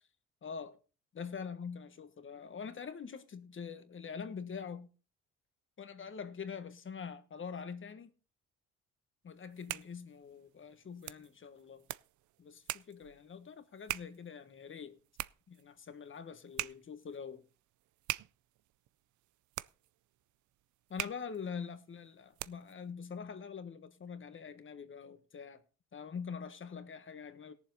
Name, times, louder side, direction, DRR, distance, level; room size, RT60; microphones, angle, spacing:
voice 1, 0.4-0.8 1.1-4.9 5.8-8.1 9.2-11.9 12.4-15.0 15.5-17.5 20.9-25.6 25.9-27.5, left 6 dB, 40° left, 1.4 m, -44 dB
sound 1, 9.4-22.8, right 16 dB, 75° right, 0.5 m, -45 dB
17.5 x 7.2 x 4.0 m
cardioid pair, 90°, 30 cm